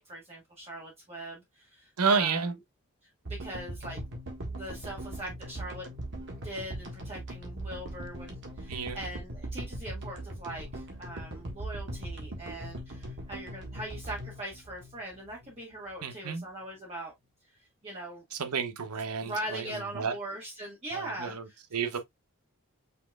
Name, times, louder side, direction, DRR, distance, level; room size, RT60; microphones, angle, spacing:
voice 1, 0.0-2.4 3.2-4.0 4.5-5.9 6.3-17.1 17.5-18.2 19.2-21.6, right 1 dB, 30° right, 1.4 m, -41 dB
voice 2, 2.0-2.5 8.7-9.0 16.0-16.4 18.3-20.1 20.9-22.0, right 5 dB, 80° right, 0.8 m, -31 dB
sound 1, 3.2-15.6, right 1 dB, 55° right, 1.5 m, -40 dB
5.5 x 4.1 x 2.3 m
head